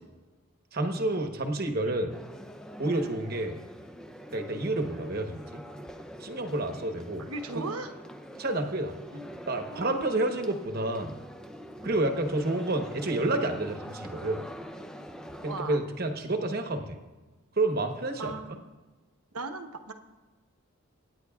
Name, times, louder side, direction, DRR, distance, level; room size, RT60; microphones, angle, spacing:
voice 1, 0.7-2.1 2.8-3.6 4.3-5.6 6.2-7.3 7.5-7.7 8.4-8.9 9.5-11.2 11.8-14.4 15.4-17.0 17.6-18.4, right 2 dB, 45° right, 5 dB, 1.0 m, -29 dB
sound 1, 2.1-15.6, equal, 5° left, 0.5 m, -45 dB
voice 2, 7.2-7.9 9.1-9.3 9.7-10.1 15.4-15.8 18.2-18.6 19.3-19.9, right 3 dB, 85° right, 6 dB, 1.0 m, -37 dB
25.5 x 9.6 x 2.4 m, 1.3 s
head